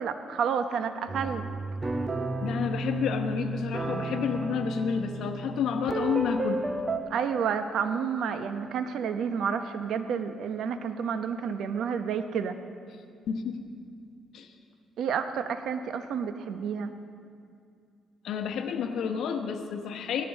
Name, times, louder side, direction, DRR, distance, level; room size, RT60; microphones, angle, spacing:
voice 1, 0.0-1.5 7.1-12.6 15.0-16.9, right 7 dB, 75° right, 9 dB, 0.8 m, -30 dB
sound 1, 1.1-7.0, right 3 dB, 30° right, 1.0 m, -33 dB
voice 2, 2.4-6.6 13.3-13.6 14.3-14.5 18.2-20.3, left 7 dB, 75° left, 6 dB, 1.1 m, -30 dB
17.5 x 14.0 x 4.1 m, 2.3 s
cardioid pair, 90°, 0 cm